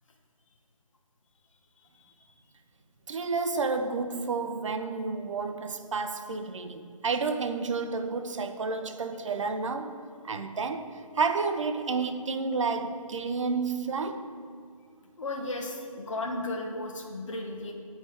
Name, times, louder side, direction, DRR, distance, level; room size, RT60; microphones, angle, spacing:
voice 1, 3.1-14.3, right 4 dB, 60° right, 0.5 m, -30 dB
voice 2, 15.2-17.7, left 2 dB, 60° left, 0.9 m, -34 dB
8.8 x 3.2 x 3.4 m
figure-of-eight pair, 160°, 19 cm